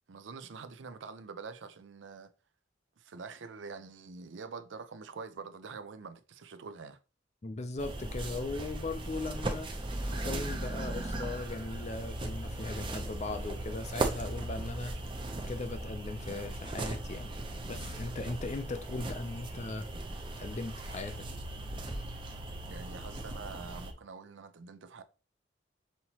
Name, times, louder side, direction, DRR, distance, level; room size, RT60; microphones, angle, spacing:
voice 1, 0.1-2.3 3.0-7.0 22.7-25.0, right 4 dB, 75° right, 0.5 m, -45 dB
voice 2, 7.4-9.7 10.1-14.9 15.5-17.3 17.7-19.9 20.4-21.2, left 3 dB, 35° left, 0.5 m, -38 dB
sound 1, 7.8-23.9, right 1 dB, 25° right, 0.5 m, -38 dB
5.7 x 2.9 x 2.8 m
head